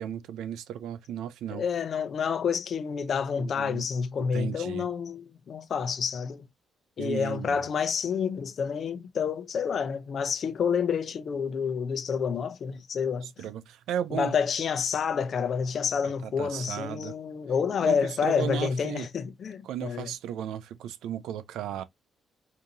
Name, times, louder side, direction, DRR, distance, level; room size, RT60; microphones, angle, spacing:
voice 1, 0.0-1.6 3.4-3.9 4.3-4.9 7.0-7.6 13.2-14.3 16.0-17.1 17.8-18.0 18.2-19.1 19.6-21.8, right 10 dB, 85° right, 0.5 m, -35 dB
voice 2, 1.5-6.5 7.0-13.3 14.1-20.1, left 6 dB, 55° left, 0.7 m, -29 dB
5.1 x 2.8 x 2.8 m
cardioid pair, 90°, 0 cm